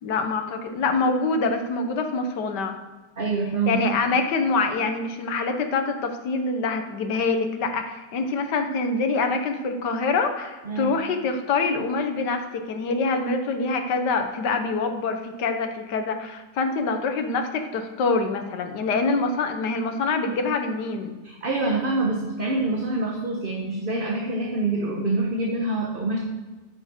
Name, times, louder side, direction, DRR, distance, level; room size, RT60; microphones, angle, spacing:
voice 1, 0.0-2.8 3.7-21.2, left 3 dB, 85° left, 6 dB, 1.6 m, -25 dB
voice 2, 3.2-3.8 10.6-11.0 21.2-26.2, right 2 dB, 35° right, 0 dB, 1.2 m, -26 dB
9.5 x 6.5 x 6.5 m, 1.2 s
omnidirectional pair, 1.8 m